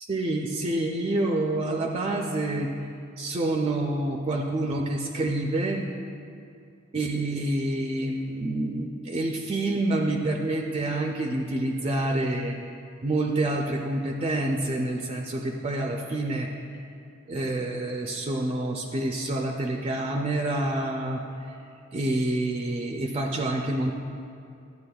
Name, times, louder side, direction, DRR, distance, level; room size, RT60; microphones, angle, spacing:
voice 1, 0.1-2.7 3.2-5.8 6.9-12.6 13.0-16.5 17.3-21.2 21.5-21.6 21.9-23.9, right 2 dB, 30° right, 2 dB, 0.4 m, -27 dB
11.5 x 8.0 x 2.3 m, 2.5 s
head